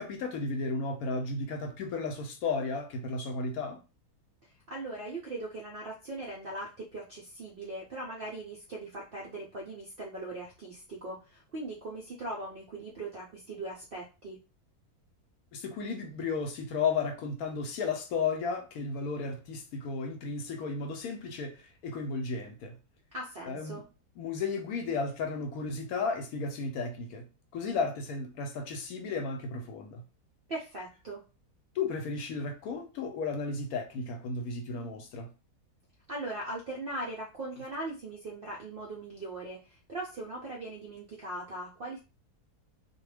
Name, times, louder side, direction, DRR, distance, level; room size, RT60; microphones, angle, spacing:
voice 1, 0.0-3.8 15.5-22.8 23.5-23.8 24.2-27.3 27.5-30.0 31.7-35.3, left 4 dB, 75° left, 1.0 m, -34 dB
voice 2, 4.7-14.4 23.1-23.8 30.5-31.2 36.1-42.0, right 2 dB, 65° right, 0.5 m, -40 dB
2.4 x 2.2 x 3.2 m
omnidirectional pair, 1.6 m